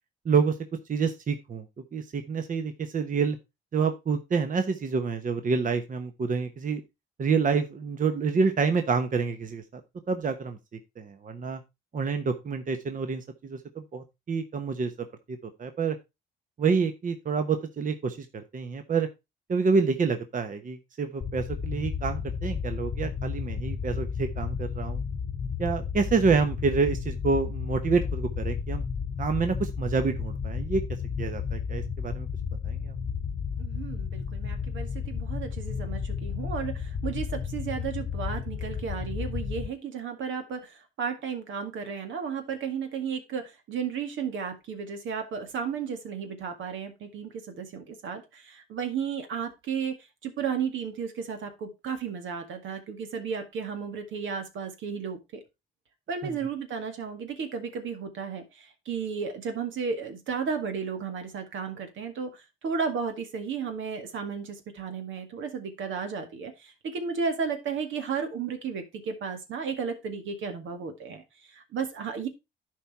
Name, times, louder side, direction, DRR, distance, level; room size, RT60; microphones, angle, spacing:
voice 1, 0.9-1.6 1.9-3.4 3.7-6.8 7.2-9.8 10.1-10.6 11.0-11.6 11.9-14.9 15.3-16.0 16.6-19.1 19.5-25.0 25.6-28.8 29.2-30.8 31.2-32.3 32.6-32.9 56.2-56.3, right 5 dB, 40° right, 7 dB, 1.0 m, -28 dB
sound 1, 21.2-39.7, left 6 dB, 50° left, 0.9 m, -32 dB
voice 2, 33.6-50.0 50.2-55.4 56.1-72.3, right 6 dB, 75° right, 6 dB, 1.9 m, -34 dB
11.0 x 4.7 x 4.2 m, 0.24 s
cardioid pair, 90°, 20 cm